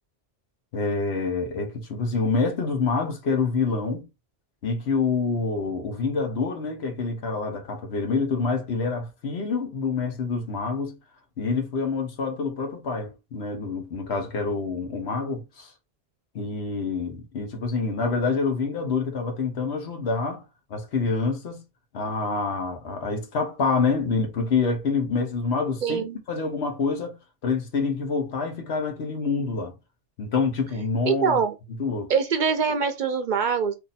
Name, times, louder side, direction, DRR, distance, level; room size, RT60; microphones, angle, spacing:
voice 1, 0.7-4.1 4.6-11.0 11.4-15.7 16.3-20.4 20.7-21.6 21.9-27.2 27.4-29.7 30.2-31.4 31.8-32.1, left 4 dB, 85° left, 1.2 m, -27 dB
voice 2, 25.8-26.2 31.1-31.5 32.1-33.7, right 6 dB, 60° right, 0.6 m, -23 dB
2.7 x 2.6 x 4.0 m
omnidirectional pair, 1.1 m